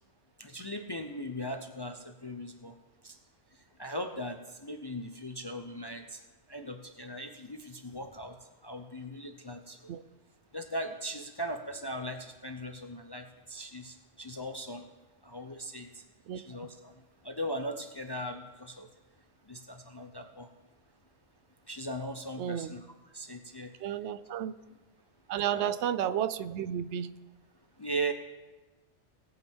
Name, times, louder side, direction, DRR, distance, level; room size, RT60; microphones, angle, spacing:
voice 1, 0.4-2.8 3.0-3.2 3.8-6.2 6.5-8.4 8.6-9.9 10.5-14.8 15.2-16.0 16.4-18.9 19.5-20.5 21.7-22.9 23.1-23.7 24.3-24.4 25.5-25.7 27.8-28.1, right 1 dB, 25° left, 5 dB, 0.5 m, -39 dB
voice 2, 22.4-22.7 23.8-24.5 25.3-27.1, right 10 dB, 75° right, 14 dB, 0.9 m, -32 dB
18.5 x 8.2 x 3.5 m, 1.1 s
omnidirectional pair, 1.2 m